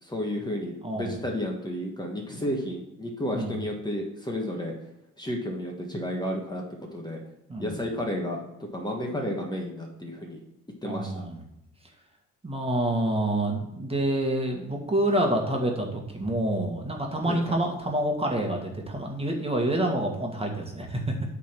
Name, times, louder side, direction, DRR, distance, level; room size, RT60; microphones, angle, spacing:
voice 1, 0.0-4.7 5.2-6.6 6.9-7.2 7.6-8.4 8.7-10.4 10.8-11.2 17.2-17.6, left 1 dB, 15° left, 0 dB, 1.5 m, -32 dB
voice 2, 0.8-1.2 3.3-3.6 7.5-7.7 10.8-11.4 12.4-21.1, right 1 dB, 20° right, 1 dB, 1.7 m, -27 dB
8.3 x 3.9 x 6.1 m, 0.86 s
cardioid pair, 90°, 30 cm